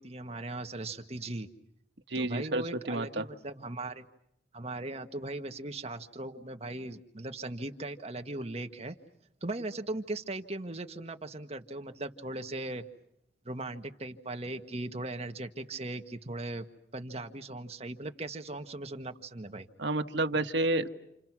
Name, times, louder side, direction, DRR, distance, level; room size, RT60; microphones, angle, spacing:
voice 1, 0.0-1.5 2.1-4.0 4.5-8.9 9.4-12.8 13.4-16.6 16.9-19.7, right 2 dB, 35° right, 6 dB, 1.6 m, -38 dB
voice 2, 2.1-3.3 19.8-20.9, right 2 dB, 70° right, 6 dB, 1.6 m, -30 dB
29.0 x 29.0 x 6.1 m, 0.78 s
head